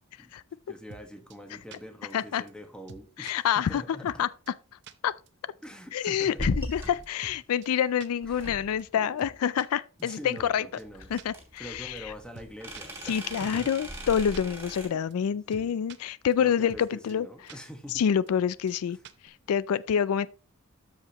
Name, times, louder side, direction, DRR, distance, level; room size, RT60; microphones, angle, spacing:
voice 1, 0.7-4.1 5.6-6.5 8.2-8.5 8.9-9.3 10.0-11.1 11.6-13.7 15.4-15.7 16.4-18.0, equal, 5° left, 1.2 m, -44 dB
sound 1, 0.9-1.0 1.3-1.4 1.7-1.8 2.1-2.2 2.5-2.6 2.9-3.3 3.7-3.8 4.1-4.2 4.5-4.6 4.8-4.9 5.3-5.4 5.6-5.7 6.0-6.1 6.4-7.4 7.6-7.7 8.0-8.1 8.4-8.5 8.8-8.9 9.2-9.7 10.0-10.1 10.4-10.5 10.8-10.9 11.2-11.3 11.6-11.7 12.0-12.1 12.3-12.5 12.7-13.7 13.9-14.0 14.3-14.4 14.7-14.8 15.1-15.2 15.5-16.0 16.3-16.4 16.7-16.8 17.1-17.2 17.5-17.6 17.9-18.0 18.3-18.4 18.7-18.8 19.0-19.3, right 5 dB, 50° right, 0.7 m, -47 dB
voice 2, 2.1-2.4 3.2-4.3 5.0-5.1 5.9-10.7 11.1-12.1 13.1-17.3 17.9-19.0 19.2-20.3, left 8 dB, 80° left, 0.3 m, -27 dB
sound 2, 6.4-7.0 8.2-8.9 11.0-14.9, equal, 10° right, 2.6 m, -37 dB
13.0 x 5.0 x 2.9 m
head